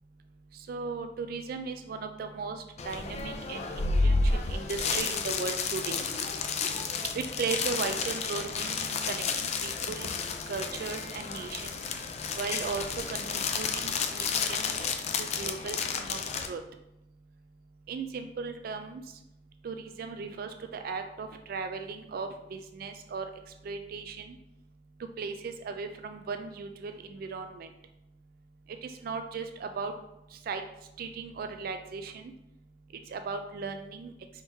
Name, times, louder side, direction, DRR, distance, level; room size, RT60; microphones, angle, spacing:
voice 1, 0.7-6.0 7.1-10.1 10.5-11.6 12.4-14.6 15.2-15.8 16.1-16.2 16.5-16.6 17.9-19.0 19.6-23.2 23.7-24.2 25.2-27.7 29.0-29.9 30.5-30.6 31.0-32.1 33.1-34.1, right 5 dB, 55° right, 7 dB, 0.3 m, -36 dB
sound 1, 2.8-16.5, left 4 dB, 40° left, 0.4 m, -31 dB
4.5 x 3.6 x 2.7 m, 0.87 s
head